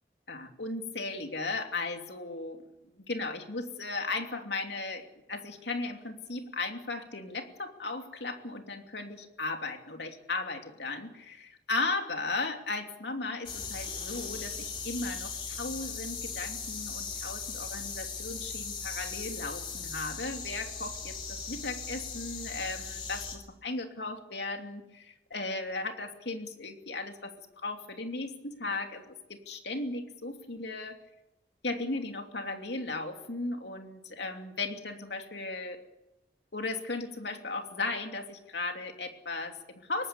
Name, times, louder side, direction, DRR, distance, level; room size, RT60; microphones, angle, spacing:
voice 1, 0.3-2.6 2.9-5.0 5.3-31.0 31.6-35.8 36.5-40.1, left 3 dB, 75° left, 4 dB, 2.9 m, -36 dB
sound 1, 13.5-23.4, left 5 dB, 30° left, 3.1 m, -38 dB
24.5 x 19.0 x 7.1 m, 0.93 s
head